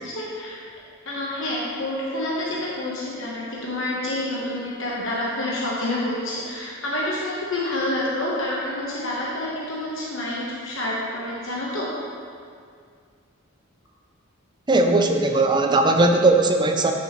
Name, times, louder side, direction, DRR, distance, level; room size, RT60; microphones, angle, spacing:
voice 1, 0.0-0.6 1.0-11.9, left 1 dB, 65° left, -6 dB, 1.1 m, -28 dB
voice 2, 14.7-16.9, right 2 dB, 20° right, 4 dB, 0.4 m, -18 dB
9.4 x 6.3 x 3.1 m, 2.2 s
head